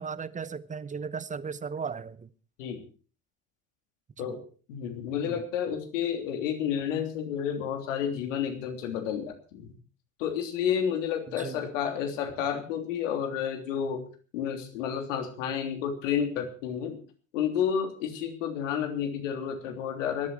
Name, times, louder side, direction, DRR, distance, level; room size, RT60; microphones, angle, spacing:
voice 1, 0.0-2.3 4.2-4.4 5.3-5.4 11.3-11.6, right 6 dB, 20° right, 1.0 m, -36 dB
voice 2, 4.7-9.7 10.2-14.0 14.3-17.0 17.3-20.3, left 8 dB, 65° left, 3.3 m, -30 dB
18.5 x 13.5 x 4.7 m
figure-of-eight pair, 65°, 40 cm